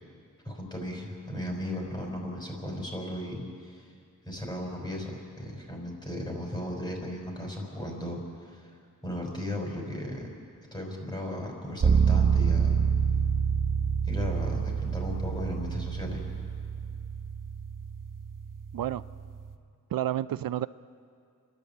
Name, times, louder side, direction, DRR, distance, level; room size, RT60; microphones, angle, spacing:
voice 1, 0.4-3.9 4.3-8.7 9.0-10.3 10.7-12.8 14.1-16.2, left 1 dB, 15° left, 0 dB, 5.4 m, -36 dB
sound 1, 11.8-19.5, right 6 dB, 70° right, 1.2 m, -27 dB
voice 2, 19.9-20.7, right 12 dB, 90° right, 16 dB, 0.5 m, -30 dB
29.5 x 11.0 x 8.6 m, 2.3 s
wide cardioid pair, 80°, 33 cm